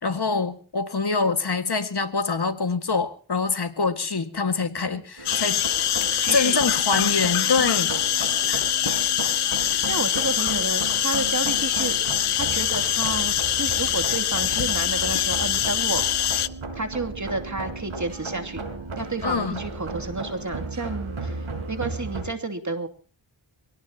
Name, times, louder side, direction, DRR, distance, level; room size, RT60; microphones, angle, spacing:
voice 1, 0.0-5.6 6.0-7.9 8.5-8.6 19.2-19.6, left 4 dB, 50° left, 9 dB, 2.0 m, -25 dB
sound 1, 5.2-22.2, right 3 dB, 75° right, 4.8 m, -35 dB
sound 2, 5.3-16.5, left 11 dB, 80° left, 0.8 m, -24 dB
voice 2, 6.2-6.6 9.9-12.0 12.4-16.3 16.8-18.6 19.0-22.9, right 3 dB, 35° right, 5 dB, 2.8 m, -31 dB
24.0 x 17.5 x 2.9 m, 0.40 s
cardioid pair, 45°, 50 cm